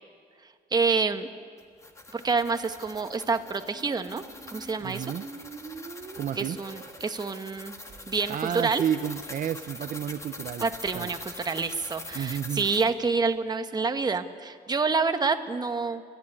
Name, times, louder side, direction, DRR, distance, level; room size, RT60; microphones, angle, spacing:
voice 1, 0.7-1.3 2.1-4.2 4.5-5.1 6.3-7.7 8.1-8.8 10.6-16.0, right 4 dB, 25° right, 8 dB, 1.1 m, -27 dB
sound 1, 1.6-12.9, left 2 dB, 20° left, 1.5 m, -44 dB
Squeak, 3.6-9.5, right 5 dB, 40° right, 2.6 m, -47 dB
voice 2, 4.8-5.2 6.2-6.6 8.3-10.7 10.9-11.1 12.1-12.7, right 9 dB, 55° right, 10 dB, 0.6 m, -31 dB
30.0 x 11.5 x 9.8 m, 2.2 s
cardioid pair, 140°, 16 cm